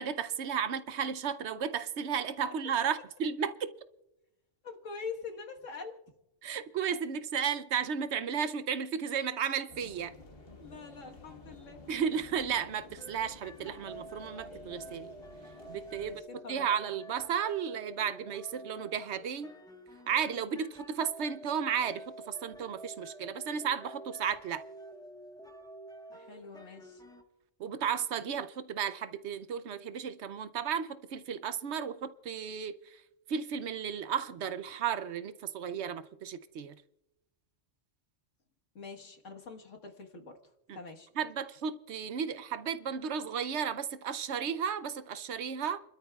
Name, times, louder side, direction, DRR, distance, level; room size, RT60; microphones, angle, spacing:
voice 1, 0.0-3.7 6.4-10.1 11.9-15.1 15.7-19.5 20.1-24.6 27.6-33.0 33.3-36.7 40.7-40.8 41.2-45.8, right 7 dB, 65° right, 0.9 m, -34 dB
voice 2, 4.6-6.0 10.6-11.8 16.0-16.2 16.4-16.7 26.1-27.0 38.8-40.4 40.7-41.1, left 4 dB, 80° left, 1.8 m, -44 dB
sound 1, 9.7-16.2, left 2 dB, 50° left, 1.8 m, -53 dB
sound 2, 13.0-27.2, right 1 dB, 5° left, 1.2 m, -49 dB
30.0 x 12.5 x 2.3 m
omnidirectional pair, 1.3 m